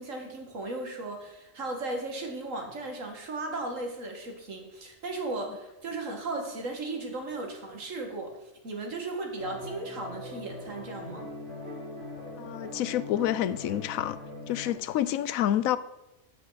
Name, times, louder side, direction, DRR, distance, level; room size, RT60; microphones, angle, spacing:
voice 1, 0.0-8.4 8.6-11.3, right 2 dB, 70° right, 2.3 m, -36 dB
sound 1, 9.4-14.7, left 1 dB, 90° right, 4.0 m, -41 dB
voice 2, 12.4-14.2 14.5-15.8, left 12 dB, 85° left, 1.0 m, -28 dB
14.0 x 7.9 x 4.1 m
omnidirectional pair, 1.4 m